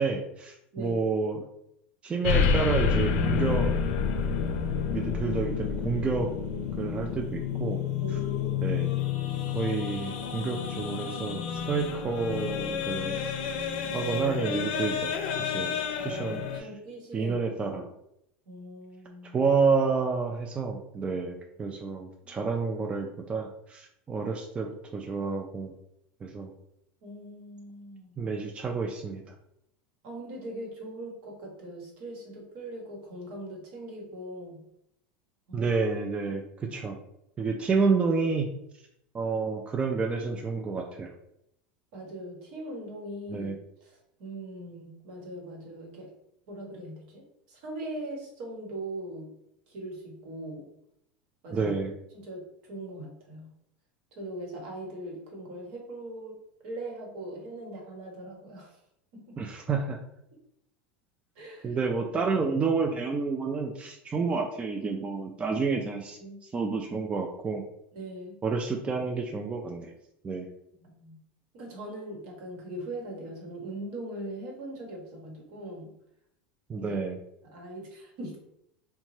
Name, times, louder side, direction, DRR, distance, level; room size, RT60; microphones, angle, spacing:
voice 1, 0.0-1.5 2.0-3.7 4.9-6.3 6.8-7.8 8.6-8.9 9.5-13.2 13.9-15.7 16.0-16.7 17.1-17.8 19.3-25.7 26.2-26.5 28.2-29.2 35.5-37.0 37.4-38.5 39.1-41.1 43.3-43.6 51.5-51.9 59.4-60.0 61.6-66.2 66.5-67.6 68.4-69.9 70.2-70.5 76.7-77.2, right 4 dB, 20° right, 3 dB, 0.3 m, -29 dB
sound 1, 2.2-16.6, left 6 dB, 70° left, 0.5 m, -29 dB
voice 2, 8.0-8.8 13.8-14.0 16.0-17.8 18.5-19.5 21.6-21.8 22.2-22.5 27.0-28.1 30.0-34.6 35.5-35.7 41.9-43.5 43.8-46.1 46.5-49.3 49.7-50.7 51.4-51.7 52.1-53.5 54.1-56.3 56.6-58.7 59.1-59.4 61.4-61.8 66.2-66.4 67.9-68.4 70.8-71.2 71.5-75.9 76.8-77.0 77.5-78.4, right 1 dB, 65° right, 0 dB, 1.1 m, -40 dB
2.7 x 2.2 x 3.0 m, 0.78 s
supercardioid pair, 110°, 5 cm